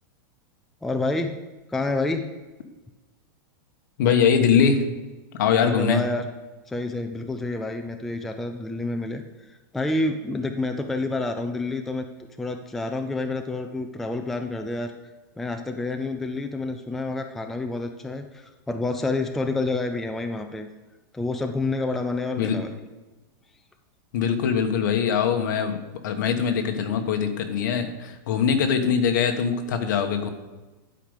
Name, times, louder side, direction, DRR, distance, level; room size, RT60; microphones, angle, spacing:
voice 1, 0.8-1.4 1.7-2.3 5.6-6.3 6.7-9.2 9.5-12.0 12.4-14.9 15.4-20.7 21.1-22.7, left 2 dB, ahead, 5 dB, 0.3 m, -28 dB
voice 2, 4.0-4.9 5.3-6.0 22.4-22.6 24.1-25.8 26.0-30.3, left 7 dB, 60° left, 6 dB, 1.3 m, -22 dB
11.5 x 5.2 x 6.5 m, 1.2 s
supercardioid pair, 170°, 11 cm